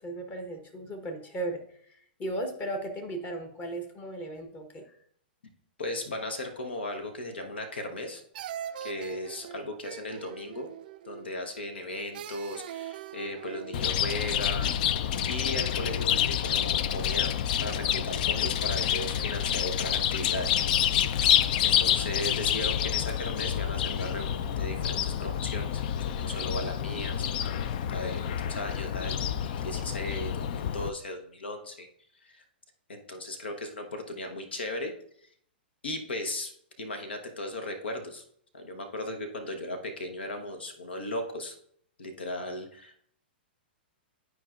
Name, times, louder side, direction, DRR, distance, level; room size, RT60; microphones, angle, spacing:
voice 1, 0.0-4.9, right 1 dB, 25° left, 5 dB, 1.0 m, -36 dB
voice 2, 5.8-8.2 8.8-10.7 11.0-20.6 21.6-31.9 32.2-32.4 32.9-34.9 35.2-35.3 35.8-36.5 36.8-38.2 38.5-41.5 42.0-43.0, left 1 dB, 80° left, 6 dB, 0.9 m, -37 dB
sound 1, 7.6-8.0 8.3-11.4 12.1-14.0, right 10 dB, 60° right, 0.4 m, -42 dB
Chirp tweet, 13.7-30.9, left 9 dB, 55° left, 0.4 m, -28 dB
11.0 x 4.6 x 2.4 m, 0.66 s
hypercardioid pair, 110°, 6 cm